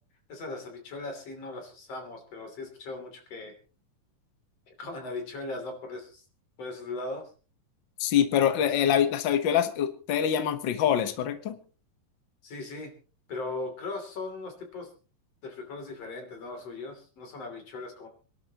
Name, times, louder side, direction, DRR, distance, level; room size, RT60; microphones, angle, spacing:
voice 1, 0.3-3.5 4.7-6.2 6.6-7.3 12.4-12.9 13.3-14.9 15.4-18.1, left 3 dB, 50° left, 4 dB, 4.0 m, -38 dB
voice 2, 8.0-11.6, left 9 dB, 90° left, 9 dB, 1.0 m, -25 dB
26.5 x 12.0 x 2.9 m, 0.36 s
omnidirectional pair, 3.9 m